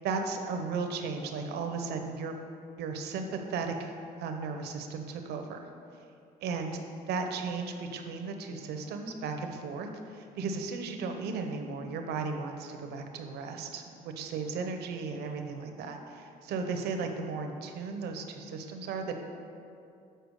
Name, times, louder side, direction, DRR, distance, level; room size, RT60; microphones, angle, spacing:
voice 1, 0.0-2.3 2.8-3.9 4.2-5.6 6.4-6.8 7.1-19.1, right 4 dB, 75° right, 5 dB, 0.8 m, -35 dB
6.7 x 4.6 x 6.4 m, 2.5 s
cardioid pair, 110°, 17 cm